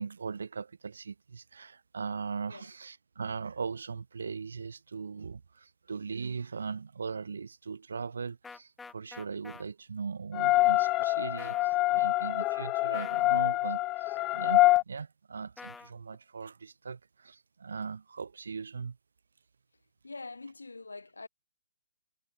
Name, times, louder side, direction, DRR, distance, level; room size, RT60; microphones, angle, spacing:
voice 1, 0.0-19.0, right 5 dB, 75° right, 5.0 m, -39 dB
sound 1, 8.4-9.6 11.4-11.7 12.9-13.3 15.6-15.9, left 4 dB, 10° left, 1.1 m, -46 dB
sound 2, 10.3-14.8, left 18 dB, 25° left, 0.4 m, -26 dB
voice 2, 20.0-21.3, left 3 dB, 90° left, 3.5 m, -44 dB
hypercardioid pair, 140°, 0 cm